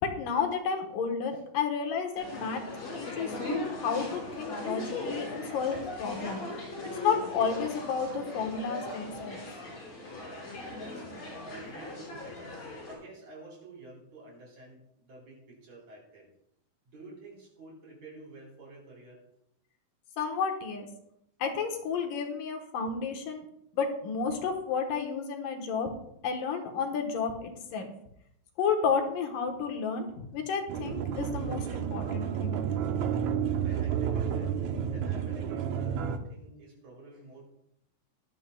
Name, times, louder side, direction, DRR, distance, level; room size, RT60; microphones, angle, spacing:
voice 1, 0.0-2.6 2.9-6.4 7.0-9.4 20.2-20.9 21.4-23.5 23.7-25.9 26.2-27.9 28.6-32.6, left 6 dB, 80° left, 3 dB, 2.9 m, -31 dB
sound 1, 2.2-12.9, left 2 dB, 50° left, 6.1 m, -39 dB
voice 2, 10.7-11.1 11.4-12.5 12.8-16.3 16.9-19.2 33.6-34.5 34.9-37.4, right 2 dB, 55° right, -3 dB, 5.2 m, -49 dB
sound 2, 30.7-36.2, right 8 dB, 70° right, 1.9 m, -31 dB
18.0 x 11.5 x 2.3 m, 0.76 s
omnidirectional pair, 3.9 m